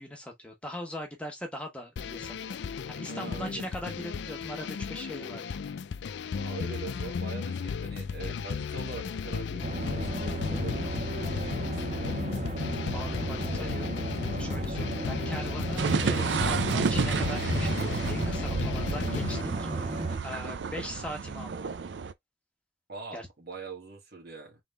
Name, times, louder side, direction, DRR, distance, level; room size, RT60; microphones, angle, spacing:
voice 1, 0.0-5.5 12.9-13.9 14.4-19.9 20.2-21.7 23.1-23.3, left 1 dB, 5° left, 1.3 m, -40 dB
sound 1, 2.0-19.4, left 6 dB, 75° left, 0.3 m, -34 dB
voice 2, 3.1-3.7 6.2-12.6 22.9-24.6, right 4 dB, 60° right, 2.1 m, -43 dB
sound 2, 9.6-20.2, right 2 dB, 35° right, 1.3 m, -34 dB
sound 3, 15.8-22.1, right 5 dB, 75° right, 0.5 m, -31 dB
3.9 x 3.6 x 3.3 m
head